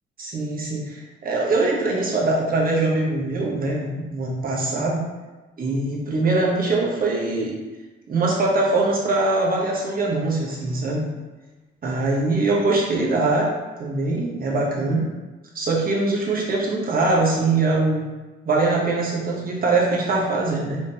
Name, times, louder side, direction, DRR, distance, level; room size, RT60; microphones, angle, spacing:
voice 1, 0.2-5.0 5.6-7.6 8.1-11.1 11.8-15.0 15.5-18.1 18.4-20.8, right 2 dB, 45° right, -3 dB, 1.3 m, -22 dB
4.8 x 3.6 x 2.9 m, 1.2 s
cardioid pair, 90°, 20 cm